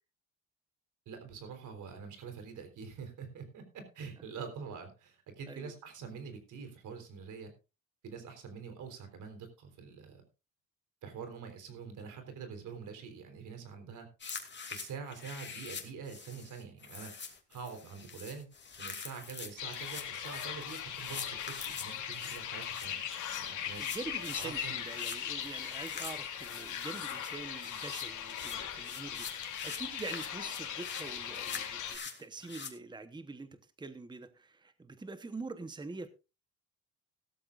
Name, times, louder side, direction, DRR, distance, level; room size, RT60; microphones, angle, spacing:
voice 1, 1.1-7.5 8.0-10.2 11.0-14.1 14.7-17.1 17.5-18.5 18.8-23.1 23.4-23.9 24.3-24.8, right 6 dB, 75° right, 3.7 m, -45 dB
sound 1, 14.2-32.7, left 5 dB, 35° left, 2.6 m, -45 dB
sound 2, 19.6-32.0, left 9 dB, 75° left, 2.9 m, -39 dB
voice 2, 23.8-33.5 33.8-36.1, right 3 dB, 15° right, 1.0 m, -45 dB
16.5 x 13.0 x 2.5 m
cardioid pair, 95°, 31 cm